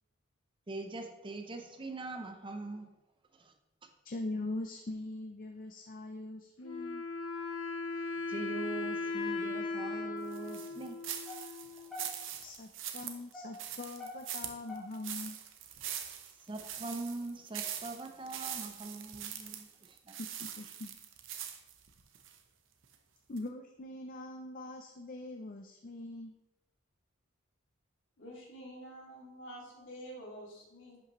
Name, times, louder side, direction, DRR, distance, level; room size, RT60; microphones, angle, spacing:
voice 1, 0.7-2.9 3.4-3.5 8.3-11.0 16.5-20.2, right 3 dB, 25° right, 0.6 m, -42 dB
voice 2, 4.0-7.0 12.4-15.4 20.2-20.9 23.3-26.3, left 2 dB, 45° left, 0.5 m, -42 dB
Wind instrument woodwind instrument, 6.6-12.1, left 3 dB, 80° left, 1.0 m, -38 dB
sound 1, 10.3-22.4 22.8-22.9 23.4-23.5, right 9 dB, 70° right, 0.8 m, -42 dB
sound 2, 11.3-12.5 13.0-15.3 15.8-15.9 16.5-16.6, left 2 dB, ahead, 2.4 m, -46 dB
voice 3, 28.2-31.0, equal, 65° left, 2.5 m, -48 dB
10.5 x 5.7 x 3.1 m
head